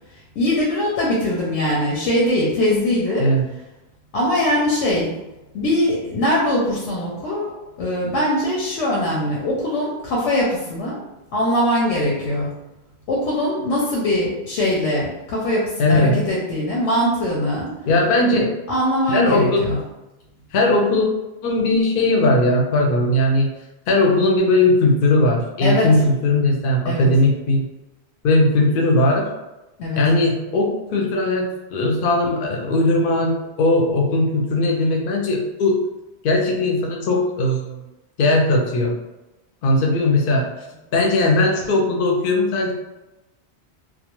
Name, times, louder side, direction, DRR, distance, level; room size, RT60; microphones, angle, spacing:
voice 1, 0.4-3.3 4.1-5.1 5.5-7.5 7.8-11.0 11.3-12.6 13.1-17.7 18.7-19.8 25.6-25.9 26.8-27.1 29.8-30.0 41.0-41.2, left 1 dB, 90° left, -4 dB, 0.9 m, -21 dB
voice 2, 15.8-16.2 17.9-18.5 19.1-19.7 20.5-21.1 21.4-23.5 23.9-27.6 28.2-29.3 30.0-35.8 36.2-37.8 38.2-39.0 39.6-40.5 40.9-42.7, left 2 dB, 60° left, 0 dB, 0.7 m, -18 dB
2.3 x 2.1 x 2.9 m, 1.0 s
omnidirectional pair, 1.1 m